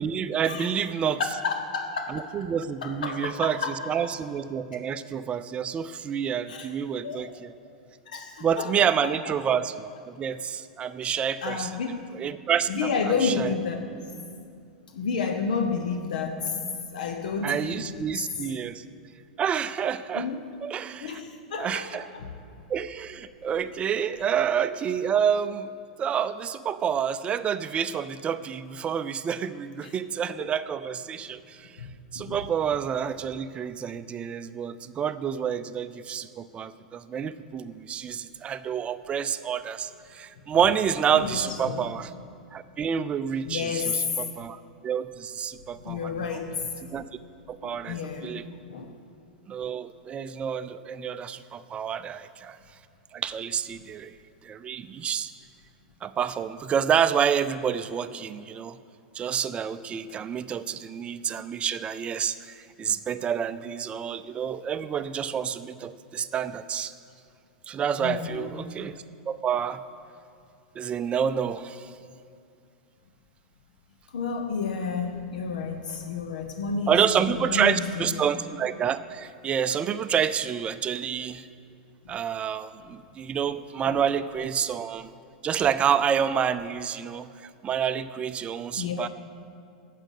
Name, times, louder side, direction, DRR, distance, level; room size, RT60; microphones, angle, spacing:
voice 1, 0.0-1.2 2.1-7.5 8.4-12.9 13.2-13.5 17.4-18.8 19.4-20.3 20.6-21.2 21.6-22.0 22.7-25.7 26.0-31.7 32.1-42.1 42.5-46.4 46.9-47.0 47.5-48.4 49.5-52.6 53.1-54.2 54.4-55.3 56.0-58.8 59.1-66.9 67.7-69.0 69.3-69.8 70.8-71.9 76.9-81.5 82.1-85.1 85.4-87.3 87.6-89.1, right 8 dB, 25° right, 13 dB, 0.5 m, -28 dB
voice 2, 1.2-2.3 2.8-4.1 6.5-6.7 7.0-7.3 8.1-9.1 11.4-12.1 12.7-14.0 14.9-16.6 16.9-18.1 20.1-20.5 21.0-22.3 29.8-29.9 30.4-30.5 31.8-31.9 32.1-32.4 41.1-41.9 43.4-44.2 45.8-46.7 47.6-48.4 48.7-49.0 68.0-68.5 74.1-78.3 83.8-84.0 88.8-89.1, left 5 dB, 75° left, 5 dB, 0.8 m, -31 dB
8.9 x 7.5 x 9.1 m, 2.4 s
hypercardioid pair, 105°, 4 cm